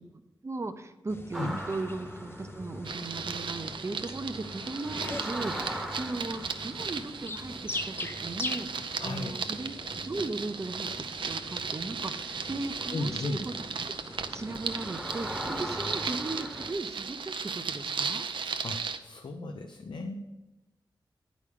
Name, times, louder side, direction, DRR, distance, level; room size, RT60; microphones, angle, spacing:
voice 1, 0.4-18.3, right 3 dB, 35° right, 10 dB, 0.6 m, -37 dB
sound 1, 1.1-15.7, left 2 dB, 30° left, 0.5 m, -43 dB
sound 2, 1.3-16.7, right 1 dB, ahead, 1.0 m, -42 dB
sound 3, 2.8-19.0, right 5 dB, 80° right, 0.6 m, -36 dB
voice 2, 9.0-9.4 12.9-13.4 18.6-20.2, left 2 dB, 70° left, 4 dB, 0.7 m, -35 dB
9.6 x 5.1 x 6.7 m, 1.0 s
wide cardioid pair, 130°, 8 cm